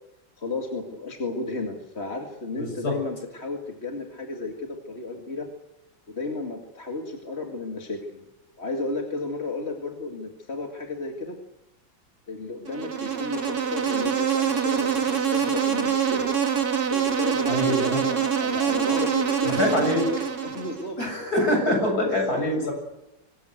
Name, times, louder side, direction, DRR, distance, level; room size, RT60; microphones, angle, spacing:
voice 1, 0.4-5.5 6.1-8.3 8.6-11.4 12.3-16.3 16.8-21.0 22.0-22.7, left 3 dB, 35° left, 2 dB, 2.5 m, -33 dB
voice 2, 2.5-2.9 17.5-18.0 19.4-20.0 21.0-22.7, left 1 dB, 50° left, 2 dB, 8.3 m, -24 dB
Insect, 12.7-20.9, right 8 dB, 55° right, 2.7 m, -25 dB
24.5 x 19.5 x 8.1 m, 0.91 s
omnidirectional pair, 2.0 m